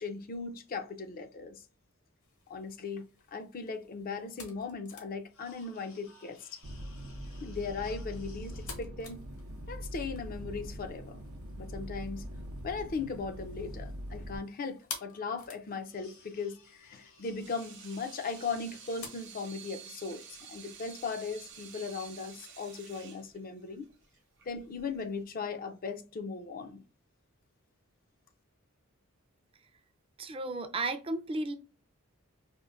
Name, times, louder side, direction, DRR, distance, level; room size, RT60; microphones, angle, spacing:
voice 1, 0.0-1.6 2.5-6.6 7.4-9.2 9.7-11.2 11.6-12.2 12.6-23.9 24.5-26.8, left 4 dB, 40° left, 0.4 m, -38 dB
sound 1, 2.2-19.1, left 5 dB, 70° left, 1.0 m, -52 dB
sound 2, 6.6-14.4, equal, 90° right, 0.6 m, -42 dB
Water tap faucet / Sink (filling or washing), 17.2-25.2, right 7 dB, 60° right, 0.8 m, -51 dB
voice 2, 30.2-31.6, right 2 dB, 25° right, 0.4 m, -34 dB
4.4 x 2.5 x 2.3 m
head